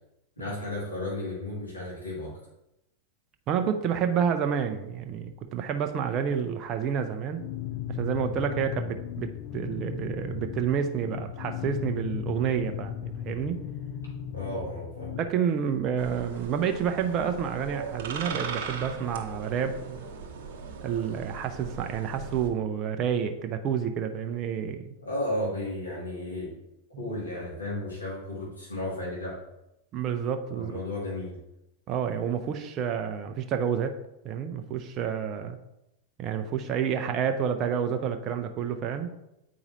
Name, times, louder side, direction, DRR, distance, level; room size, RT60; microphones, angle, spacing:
voice 1, 0.4-2.4 14.3-15.1 25.0-26.6 27.0-29.4 30.6-31.4, left 1 dB, 80° left, -5 dB, 2.0 m, -34 dB
voice 2, 3.5-7.4 7.9-13.6 15.2-20.0 20.8-24.9 26.9-27.1 29.9-30.8 31.9-34.0 34.2-35.6 36.2-39.1, right 7 dB, 35° right, 6 dB, 0.5 m, -29 dB
sound 1, 7.3-15.3, left 10 dB, 40° left, 0.4 m, -36 dB
sound 2, 16.0-22.5, right 5 dB, 50° right, 0.9 m, -38 dB
8.4 x 4.8 x 2.7 m, 0.87 s
figure-of-eight pair, 90°, 0 cm